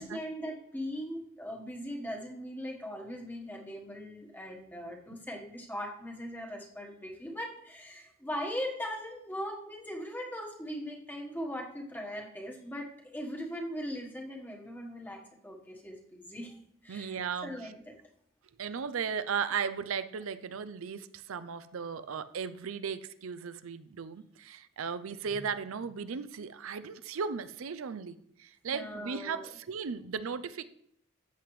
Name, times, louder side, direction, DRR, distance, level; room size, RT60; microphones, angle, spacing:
voice 1, 0.0-17.9 28.7-29.5, equal, 10° left, 0 dB, 1.3 m, -40 dB
voice 2, 16.9-17.5 18.6-30.6, right 6 dB, 85° right, 13 dB, 0.5 m, -36 dB
13.5 x 7.7 x 3.2 m, 0.70 s
head